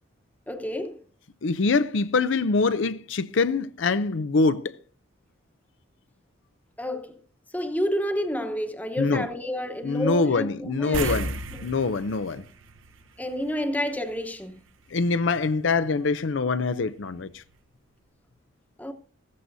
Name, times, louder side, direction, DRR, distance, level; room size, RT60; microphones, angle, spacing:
voice 1, 0.5-1.0 6.8-7.2 7.5-11.2 11.5-11.7 13.2-14.6 18.8-18.9, equal, 10° left, 1.0 m, -30 dB
voice 2, 1.4-4.7 9.0-9.3 9.8-11.3 11.6-12.4 14.9-17.4, left 4 dB, 70° left, 0.5 m, -24 dB
sound 1, 10.9-13.7 14.0-14.2 17.1-17.2 17.5-17.6, right 3 dB, 80° right, 0.8 m, -34 dB
15.0 x 14.0 x 2.7 m
head